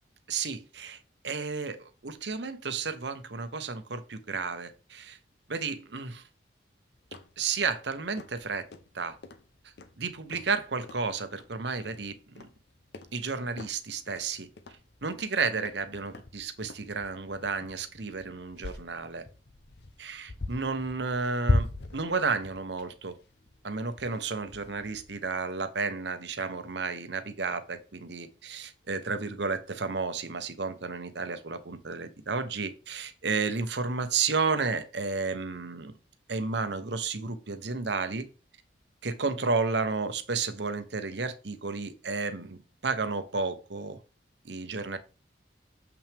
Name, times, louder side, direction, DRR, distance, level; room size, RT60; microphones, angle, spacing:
voice 1, 0.3-1.0 1.2-5.2 5.5-6.2 7.4-8.6 8.9-9.2 10.0-12.5 13.1-14.5 15.0-19.2 20.0-23.1 23.6-35.9 36.3-38.3 39.0-44.0 44.4-45.0, right 4 dB, 70° right, 10 dB, 1.0 m, -32 dB
sound 1, 6.9-25.3, left 2 dB, 65° left, 0.8 m, -38 dB
7.2 x 5.9 x 3.6 m, 0.32 s
head